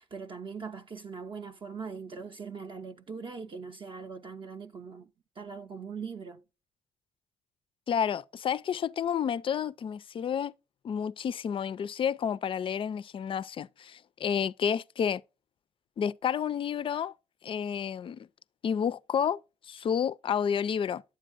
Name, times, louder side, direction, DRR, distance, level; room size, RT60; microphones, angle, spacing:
voice 1, 0.0-5.1 5.4-6.4, right 5 dB, 35° right, 0.6 m, -41 dB
voice 2, 7.9-10.5 10.8-15.2 16.0-17.1 17.4-18.3 18.6-19.4 19.7-21.0, left 8 dB, 35° left, 0.4 m, -30 dB
9.0 x 7.4 x 2.5 m
hypercardioid pair, 50°, 15 cm